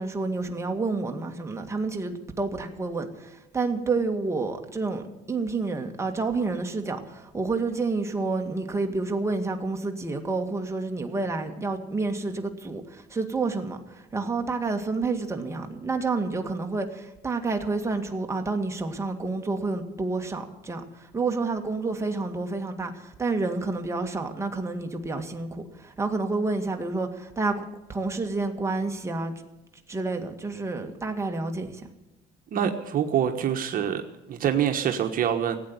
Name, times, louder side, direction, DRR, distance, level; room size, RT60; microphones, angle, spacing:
voice 1, 0.0-27.6 27.9-29.3 29.9-31.9, right 3 dB, 15° right, 2.1 m, -29 dB
voice 2, 32.5-34.0 34.3-35.6, right 9 dB, 55° right, 1.3 m, -25 dB
16.5 x 8.9 x 9.6 m
cardioid pair, 110°, 17 cm